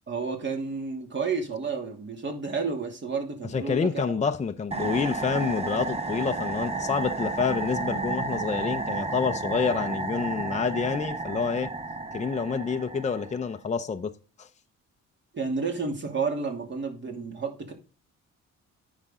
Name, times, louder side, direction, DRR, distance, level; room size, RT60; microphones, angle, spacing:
voice 1, 0.1-4.2 15.3-17.7, right 4 dB, 40° right, 2.7 m, -31 dB
voice 2, 3.5-11.7 12.1-14.1 14.4-14.5, left 5 dB, 25° left, 0.7 m, -28 dB
sound 1, 4.7-13.5, right 3 dB, 20° right, 0.9 m, -32 dB
9.7 x 6.1 x 3.8 m
cardioid pair, 90°, 30 cm